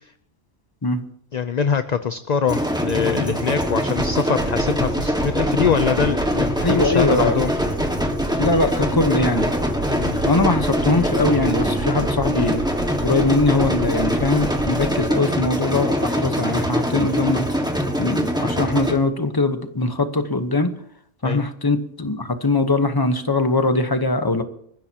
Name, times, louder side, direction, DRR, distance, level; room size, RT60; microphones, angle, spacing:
voice 1, 1.3-7.5 9.9-10.2 13.5-13.7 21.2-21.4, left 6 dB, 45° left, 10 dB, 0.6 m, -23 dB
sound 1, 2.5-19.0, equal, 5° right, 1.6 m, -23 dB
sound 2, 3.6-15.0, right 1 dB, 75° right, 4.7 m, -32 dB
voice 2, 6.6-7.4 8.4-9.5 10.2-12.6 13.0-17.4 18.0-20.7 21.2-24.4, left 2 dB, 20° left, 8 dB, 1.1 m, -21 dB
27.5 x 14.5 x 2.9 m, 0.67 s
omnidirectional pair, 1.3 m